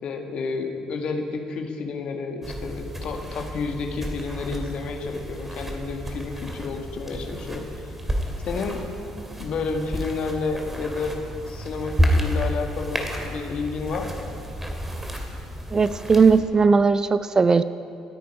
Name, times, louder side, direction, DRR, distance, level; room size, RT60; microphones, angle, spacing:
voice 1, 0.0-7.9 8.4-8.8 9.4-14.3, left 4 dB, 50° left, 4 dB, 1.8 m, -30 dB
sound 1, 2.4-16.4, equal, 10° right, 2.4 m, -30 dB
voice 2, 15.7-17.6, right 4 dB, 30° right, 13 dB, 0.5 m, -18 dB
27.5 x 9.3 x 4.9 m, 2.6 s
figure-of-eight pair, 50°, 2 cm